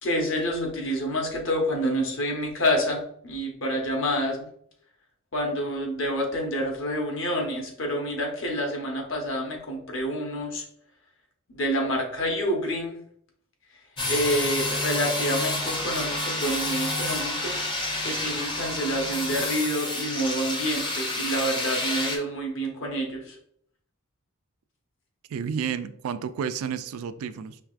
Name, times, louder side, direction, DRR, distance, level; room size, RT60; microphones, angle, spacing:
voice 1, 0.0-4.5 5.3-10.7 11.5-13.0 14.1-17.6 18.0-23.4, equal, 60° left, 0.9 m, -28 dB
sound 1, 14.0-22.2, left 2 dB, 20° left, 0.5 m, -29 dB
voice 2, 25.3-27.6, right 7 dB, 75° right, 0.3 m, -31 dB
4.6 x 3.1 x 2.4 m
head